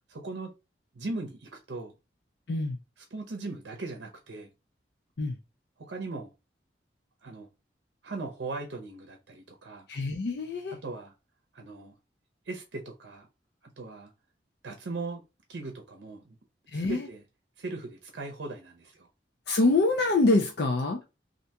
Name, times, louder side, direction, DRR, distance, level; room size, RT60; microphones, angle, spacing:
voice 1, 0.1-0.5 0.9-1.9 3.1-4.5 5.8-6.3 7.2-7.5 8.0-9.9 10.8-11.1 11.5-11.9 12.5-13.3 13.8-14.1 14.6-15.2 15.5-16.4 16.7-17.2 17.6-19.1, right 3 dB, 80° right, 0.6 m, -38 dB
voice 2, 9.9-10.7 16.7-17.1 19.5-21.0, left 2 dB, 65° left, 0.5 m, -25 dB
3.3 x 2.5 x 2.8 m
head